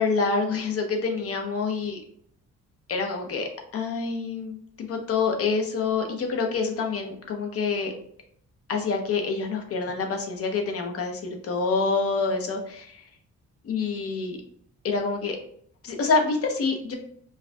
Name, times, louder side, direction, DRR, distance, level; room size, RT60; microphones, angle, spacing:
voice 1, 0.0-2.0 2.9-7.9 8.7-13.1 13.6-14.4 14.8-15.4 15.8-16.9, left 4 dB, 50° left, 3 dB, 0.7 m, -27 dB
4.8 x 2.6 x 2.2 m, 0.64 s
wide cardioid pair, 165°, 30 cm